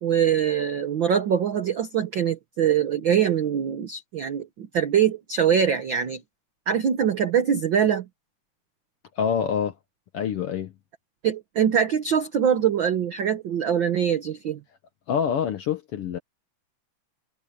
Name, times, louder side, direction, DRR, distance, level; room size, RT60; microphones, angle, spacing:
voice 1, 0.0-6.2 6.7-8.1 11.2-14.6, right 8 dB, 80° right, 1.0 m, -23 dB
voice 2, 9.2-9.7 10.1-10.7 15.1-16.2, left 8 dB, 65° left, 1.5 m, -26 dB
omnidirectional pair, 3.7 m